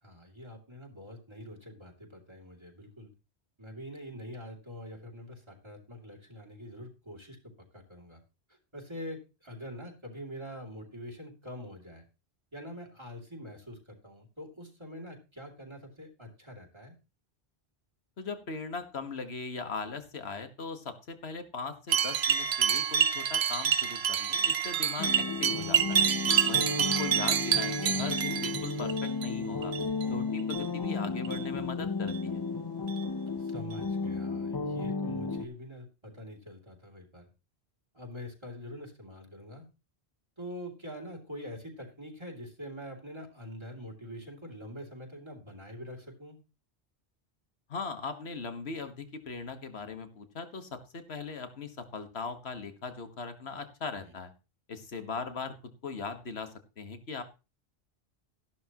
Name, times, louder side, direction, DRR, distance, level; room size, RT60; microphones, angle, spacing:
voice 1, 0.0-3.1 3.6-8.2 8.5-12.0 12.5-16.9 26.2-26.5 33.4-37.3 37.9-39.7 40.4-46.4 53.9-54.1, equal, 25° right, 3 dB, 2.9 m, -45 dB
voice 2, 18.2-26.1 26.5-29.7 30.1-32.4 47.7-54.3 54.7-55.5 55.8-57.2, left 4 dB, 75° left, 8 dB, 1.8 m, -39 dB
sound 1, 21.9-29.3 29.6-30.0 30.4-30.7 31.2-31.4 32.1-32.2 32.9-33.0 33.7-33.8, right 8 dB, 75° right, 1.1 m, -28 dB
sound 2, 25.0-35.4, left 3 dB, 25° left, 0.7 m, -33 dB
14.0 x 11.5 x 3.0 m, 0.30 s
omnidirectional pair, 1.1 m